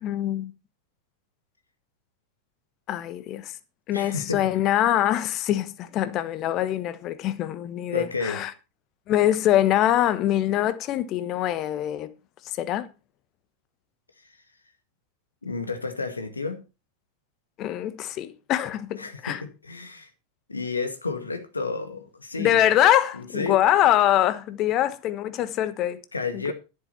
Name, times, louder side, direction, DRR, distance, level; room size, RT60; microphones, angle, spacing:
voice 1, 0.0-0.5 2.9-3.5 3.9-8.5 9.1-12.1 12.6-12.9 17.6-19.4 22.4-26.0, left 12 dB, 35° left, 1.1 m, -24 dB
voice 2, 3.9-4.5 7.9-8.5 15.4-16.6 19.0-20.1 20.5-22.7 23.1-23.6 26.1-26.5, left 4 dB, 80° left, 2.0 m, -31 dB
11.0 x 9.6 x 4.4 m
figure-of-eight pair, 90°, 0 cm